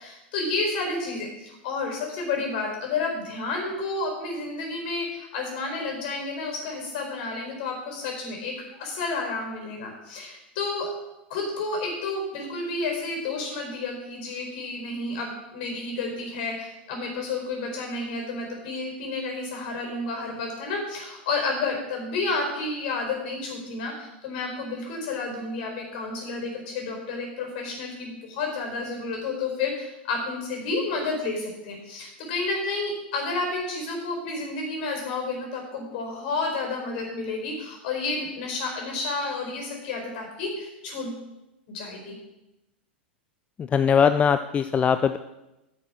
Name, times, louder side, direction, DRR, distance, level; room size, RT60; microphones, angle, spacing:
voice 1, 0.0-10.9 11.3-41.2 41.7-42.2, left 3 dB, 60° left, 1 dB, 4.3 m, -31 dB
voice 2, 43.6-45.2, left 7 dB, 20° left, 10 dB, 0.4 m, -21 dB
10.0 x 6.5 x 6.1 m, 0.96 s
hypercardioid pair, 95°, 6 cm